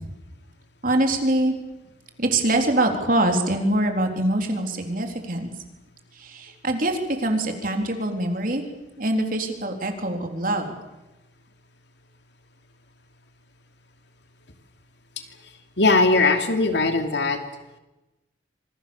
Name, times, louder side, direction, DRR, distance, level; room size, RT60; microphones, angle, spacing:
voice 1, 0.8-1.5 2.2-5.5 6.2-8.6 9.0-10.7, right 1 dB, 45° right, 4 dB, 3.8 m, -24 dB
voice 2, 15.8-17.4, left 3 dB, 65° left, 6 dB, 2.8 m, -19 dB
27.0 x 25.5 x 7.2 m, 1.0 s
head